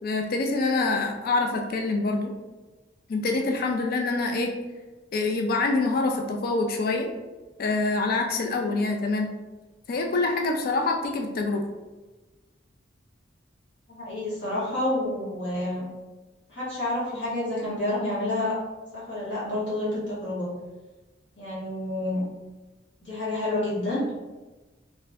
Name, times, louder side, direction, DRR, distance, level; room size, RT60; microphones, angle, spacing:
voice 1, 0.0-2.3 3.1-4.5 5.1-7.1 7.6-9.3 9.9-11.6, left 3 dB, 50° left, 3 dB, 0.4 m, -25 dB
voice 2, 13.9-15.8 16.5-18.5 18.9-20.5 21.4-22.2 23.0-24.0, left 1 dB, 70° left, -8 dB, 1.4 m, -29 dB
3.8 x 3.2 x 2.3 m, 1.2 s
head